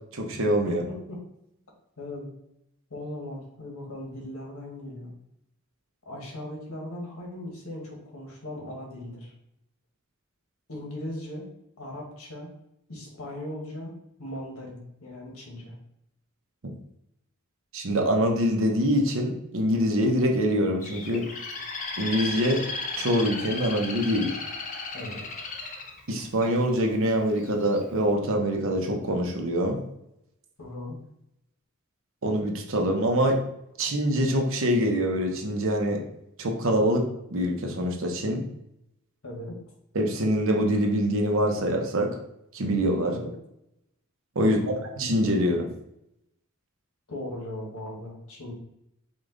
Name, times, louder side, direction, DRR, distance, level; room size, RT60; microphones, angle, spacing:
voice 1, 0.1-0.8 17.7-21.3 22.0-22.6 23.0-24.3 26.1-29.8 32.2-33.4 33.8-36.0 36.4-37.0 37.3-38.4 39.9-42.1 42.5-43.1 44.4-44.6 45.0-45.7, equal, 65° right, 2 dB, 0.8 m, -24 dB
voice 2, 0.6-1.2 2.0-2.3 2.9-5.1 6.0-9.3 10.7-11.5 11.8-12.5 12.9-13.9 14.2-15.8 24.9-25.2 30.6-31.0 39.2-39.6 43.0-43.3 44.4-44.8 47.1-48.5, left 1 dB, 85° left, -1 dB, 1.3 m, -38 dB
Bird, 20.8-26.9 27.4-27.8, left 3 dB, 40° left, 0.7 m, -35 dB
5.2 x 2.4 x 3.8 m, 0.80 s
head